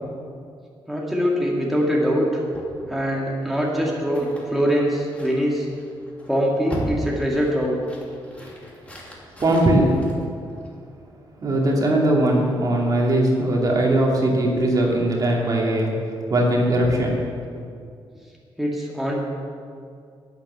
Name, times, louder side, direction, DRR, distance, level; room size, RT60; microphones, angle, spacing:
voice 1, 0.9-2.3 2.9-5.7 6.3-7.8 18.6-19.2, equal, ahead, -4 dB, 2.1 m, -23 dB
sound 1, 2.5-11.0, equal, 15° left, 2.7 m, -38 dB
voice 2, 9.4-9.9 11.4-15.9 16.3-17.2, right 1 dB, 40° right, -2 dB, 2.6 m, -20 dB
11.5 x 9.3 x 8.0 m, 2.3 s
cardioid pair, 135°, 9 cm